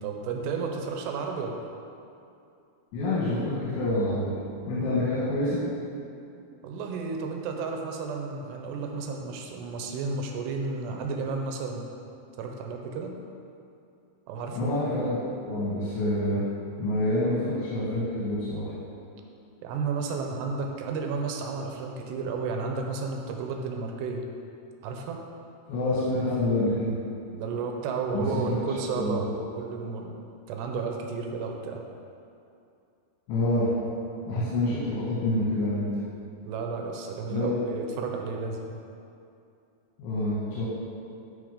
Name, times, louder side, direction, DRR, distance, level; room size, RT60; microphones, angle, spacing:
voice 1, 0.0-1.7 6.6-11.9 12.4-13.2 14.3-14.7 19.6-24.2 24.8-25.2 27.3-30.1 30.5-31.8 36.4-38.7, right 4 dB, 80° right, 2 dB, 2.7 m, -32 dB
voice 2, 2.9-4.3 4.7-5.6 14.5-16.4 16.8-18.7 25.7-27.0 28.1-28.6 28.8-29.2 33.3-33.7 34.2-35.9 37.3-37.7 40.0-40.7, left 1 dB, 80° left, -8 dB, 4.0 m, -27 dB
13.5 x 4.6 x 5.0 m, 2.6 s
omnidirectional pair, 5.3 m